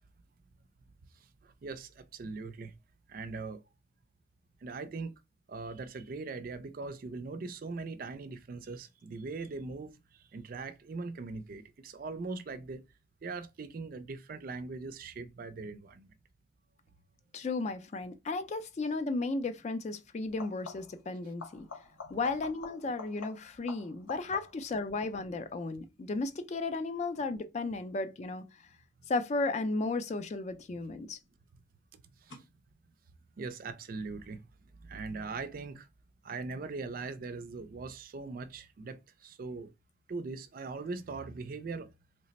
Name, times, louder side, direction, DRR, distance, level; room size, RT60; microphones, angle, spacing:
voice 1, 1.4-2.7 3.1-3.6 4.6-5.1 5.5-9.9 10.3-12.8 13.2-16.1 22.0-22.2 32.3-32.4 33.4-34.4 34.8-35.9 36.2-39.7 40.1-41.9, right 3 dB, 45° right, 0.4 m, -40 dB
voice 2, 17.3-21.7 22.1-28.4 29.1-31.2, left 3 dB, 35° left, 0.3 m, -34 dB
sound 1, 18.8-19.1 20.2-21.1 21.4-24.8 30.2-30.8 32.3-32.4, left 4 dB, 85° left, 1.0 m, -48 dB
3.1 x 2.0 x 4.0 m
head